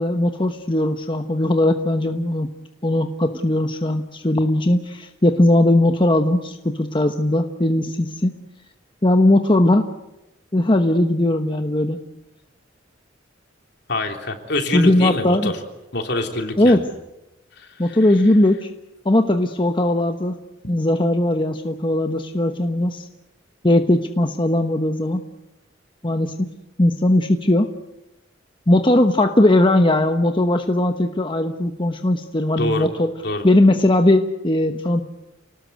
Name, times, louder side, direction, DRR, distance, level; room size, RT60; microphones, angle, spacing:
voice 1, 0.0-2.5 2.8-8.3 9.0-9.8 10.5-12.0 14.7-15.5 16.6-16.8 17.8-18.7 19.0-20.3 20.7-23.1 23.6-25.2 26.0-26.3 26.8-27.7 28.7-33.1 33.4-35.0, left 1 dB, 25° left, 6 dB, 1.1 m, -18 dB
voice 2, 13.9-15.6 15.9-16.8 17.6-18.1 32.6-32.9 33.2-33.4, left 2 dB, 60° left, 4 dB, 3.3 m, -25 dB
29.0 x 19.5 x 8.1 m, 0.95 s
head